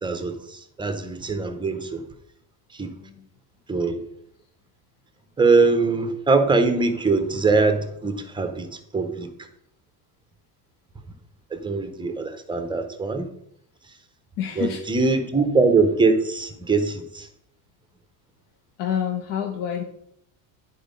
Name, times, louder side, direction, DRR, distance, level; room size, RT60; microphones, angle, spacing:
voice 1, 0.0-2.0 2.7-2.9 3.7-4.0 5.4-9.3 11.5-13.3 14.6-17.3, right 4 dB, 10° right, 0.6 m, -22 dB
voice 2, 14.4-14.8 18.8-19.8, left 9 dB, 60° left, 1.1 m, -27 dB
10.0 x 4.5 x 5.2 m
cardioid pair, 160°, 48 cm